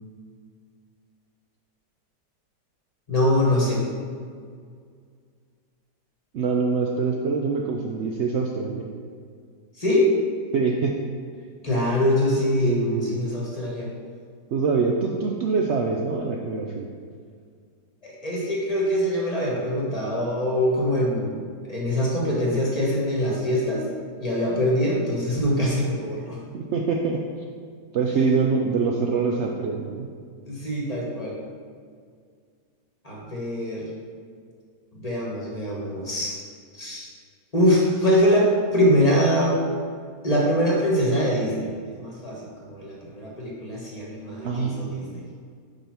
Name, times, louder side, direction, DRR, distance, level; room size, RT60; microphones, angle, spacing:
voice 1, 3.1-3.8 9.8-10.1 11.6-13.9 18.0-23.9 24.2-26.4 30.4-31.4 33.0-33.9 34.9-36.4 36.7-37.1 37.5-39.6 40.2-45.2, equal, 25° left, -4 dB, 1.1 m, -23 dB
voice 2, 6.3-8.9 10.5-11.0 12.6-13.2 14.5-16.9 26.5-27.2 27.9-30.1 44.4-45.2, right 4 dB, 85° right, 0 dB, 0.6 m, -24 dB
5.0 x 4.9 x 5.8 m, 2.1 s
omnidirectional pair, 1.8 m